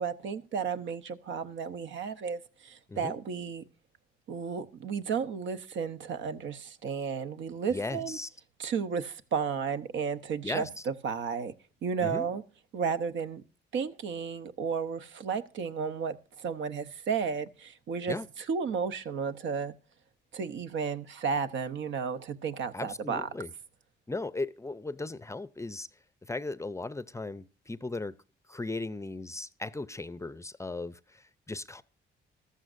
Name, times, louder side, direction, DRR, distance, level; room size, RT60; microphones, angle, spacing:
voice 1, 0.0-3.6 4.3-8.2 8.6-11.5 11.8-12.4 12.7-13.4 13.7-19.7 20.3-23.3, right 6 dB, 70° right, 1.0 m, -33 dB
voice 2, 7.7-8.3 10.4-10.7 12.0-12.3 18.1-18.3 22.7-23.5 24.1-25.9 26.2-28.1 28.5-31.8, left 2 dB, 15° left, 0.5 m, -37 dB
14.5 x 13.0 x 2.6 m
cardioid pair, 90°, 20 cm